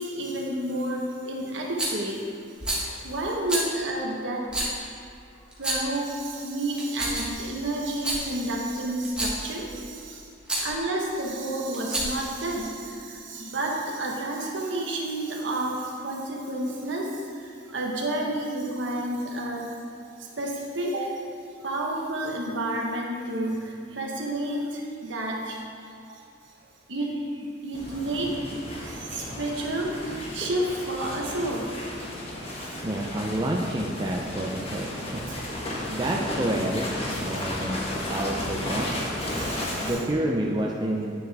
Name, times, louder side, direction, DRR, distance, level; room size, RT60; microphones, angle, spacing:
voice 1, 0.0-2.3 2.8-4.5 5.6-10.3 10.6-19.7 20.2-21.1 21.6-25.7 26.9-28.4 28.7-31.7 32.5-32.8 37.4-37.5 39.3-39.9, right 1 dB, 70° right, -1 dB, 1.2 m, -30 dB
Rattle, 1.8-2.0 2.6-2.9 3.5-3.7 4.5-4.7 5.5-6.0 6.7-7.4 7.9-8.2 9.0-9.4 10.4-10.7 11.7-12.3, right 1 dB, 5° right, 1.4 m, -28 dB
sound 1, 27.7-39.9, left 1 dB, 30° left, 1.2 m, -34 dB
voice 2, 32.8-35.2 35.9-36.9 37.2-37.8 38.1-38.9 39.8-41.1, right 1 dB, 20° right, -1 dB, 0.5 m, -28 dB
9.5 x 6.5 x 3.5 m, 2.6 s
head